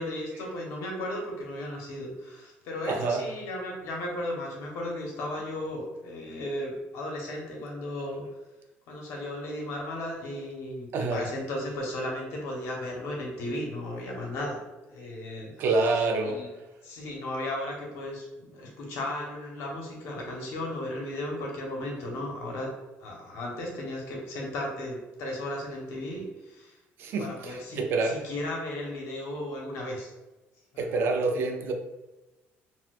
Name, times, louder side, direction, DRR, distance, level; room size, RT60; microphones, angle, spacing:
voice 1, 0.0-8.2 8.9-14.6 14.9-15.6 16.2-16.5 16.8-22.7 23.0-26.8 27.2-30.1 30.7-30.9, left 1 dB, 70° left, -1 dB, 0.9 m, -35 dB
voice 2, 2.9-3.3 10.9-11.3 15.6-16.5 27.0-28.2 30.8-31.7, right 3 dB, 50° right, 4 dB, 0.4 m, -27 dB
4.0 x 2.2 x 2.3 m, 1.1 s
cardioid pair, 170°, 5 cm